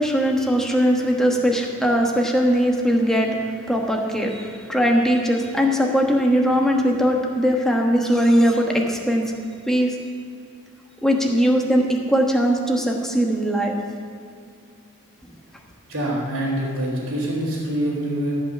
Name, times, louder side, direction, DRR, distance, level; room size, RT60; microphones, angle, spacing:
voice 1, 0.0-3.4 3.7-9.3 9.7-9.9 11.0-13.8, equal, ahead, 0 dB, 1.2 m, -20 dB
voice 2, 15.9-18.3, right 1 dB, 60° right, -9 dB, 2.9 m, -25 dB
14.5 x 5.8 x 7.4 m, 2.4 s
head